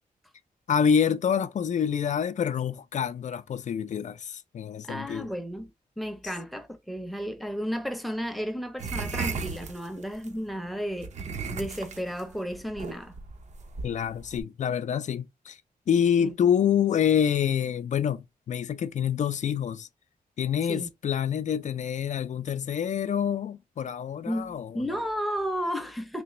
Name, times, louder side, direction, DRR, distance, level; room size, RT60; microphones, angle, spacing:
voice 1, 0.7-5.3 13.8-15.6 15.9-19.9 20.4-24.7, left 8 dB, 55° left, 0.4 m, -27 dB
voice 2, 4.8-5.7 6.0-11.1 11.5-13.2 16.2-16.3 20.7-20.9 24.3-26.2, equal, ahead, 0.6 m, -33 dB
sound 1, 8.8-10.3 11.0-14.4, right 4 dB, 50° right, 0.6 m, -35 dB
3.3 x 2.9 x 3.0 m
wide cardioid pair, 150°, 15 cm